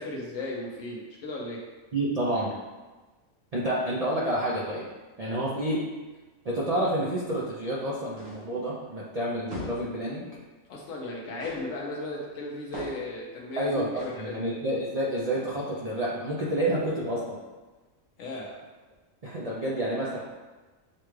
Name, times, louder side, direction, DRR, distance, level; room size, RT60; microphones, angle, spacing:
voice 1, 0.0-1.6 10.7-14.5 18.2-18.6, left 2 dB, 70° left, -3 dB, 1.1 m, -36 dB
voice 2, 1.9-2.5 3.5-4.9 5.2-5.8 6.4-10.3 13.6-17.4 19.2-20.3, right 1 dB, 55° right, -5 dB, 0.4 m, -29 dB
sound 1, 8.2-8.6 9.5-10.0 11.4-11.8 12.7-13.2 14.0-14.3, equal, 75° right, 1.3 m, -39 dB
6.5 x 2.3 x 3.1 m, 1.2 s
omnidirectional pair, 1.4 m